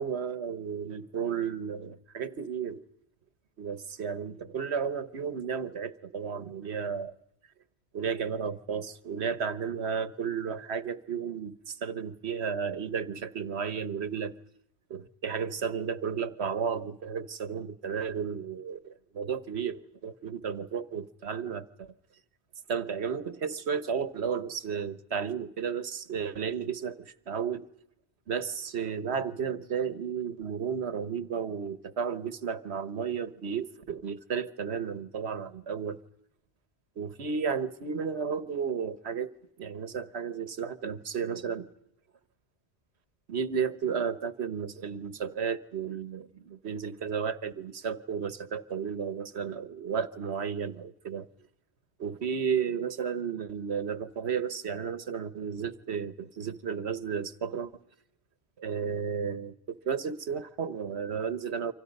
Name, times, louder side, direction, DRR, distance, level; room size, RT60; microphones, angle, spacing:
voice 1, 0.0-2.8 3.6-7.1 7.9-14.4 14.9-21.9 22.7-27.7 28.3-36.0 37.0-39.3 39.6-41.7 43.3-51.3 52.0-57.7 58.6-61.7, right 6 dB, 85° right, 1.4 m, -33 dB
29.0 x 25.5 x 5.4 m
omnidirectional pair, 1.1 m